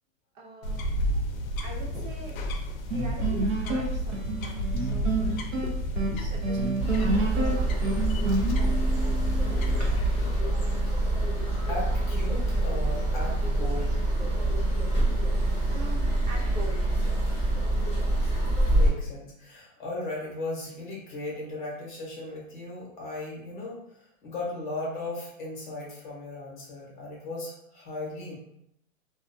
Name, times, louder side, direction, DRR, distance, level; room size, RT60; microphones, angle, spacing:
voice 1, 0.3-0.9 1.6-2.6 2.9-5.4 6.1-9.0 9.4-9.8 15.3-17.0, right 2 dB, 75° right, -2 dB, 0.9 m, -44 dB
sound 1, 0.6-10.4, equal, 75° left, 0.5 m, -32 dB
sound 2, 2.9-9.9, right 2 dB, 50° right, 0.6 m, -30 dB
sound 3, 6.8-18.9, right 1 dB, 10° right, 0.3 m, -25 dB
voice 2, 11.7-14.0 18.7-28.4, left 2 dB, 35° left, -4 dB, 0.8 m, -37 dB
2.4 x 2.1 x 2.4 m, 0.78 s
hypercardioid pair, 170°, 41 cm